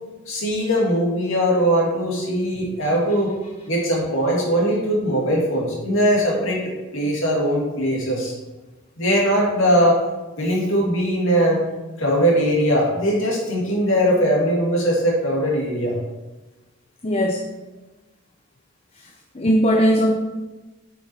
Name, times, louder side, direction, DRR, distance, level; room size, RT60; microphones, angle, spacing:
voice 1, 0.3-3.3 3.7-8.3 9.0-10.0 10.4-11.6 12.0-15.9, equal, 70° left, -3 dB, 2.7 m, -20 dB
voice 2, 17.0-17.5 19.3-20.2, equal, 30° left, 2 dB, 0.7 m, -18 dB
7.8 x 6.2 x 4.8 m, 1.1 s
head